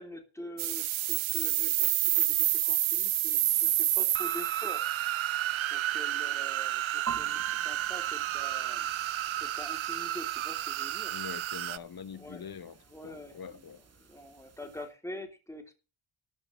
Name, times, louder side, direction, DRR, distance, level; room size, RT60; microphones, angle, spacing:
voice 1, 0.0-4.8 5.7-9.0 9.4-11.1 12.1-12.4 12.9-13.6 14.0-15.7, left 1 dB, 5° left, 3.3 m, -45 dB
sound 1, 0.6-11.8, right 13 dB, 70° right, 0.7 m, -30 dB
sound 2, 7.1-14.9, right 7 dB, 30° right, 1.0 m, -47 dB
voice 2, 11.1-13.9, left 7 dB, 45° left, 1.3 m, -44 dB
13.5 x 5.8 x 7.5 m
wide cardioid pair, 120°, 50 cm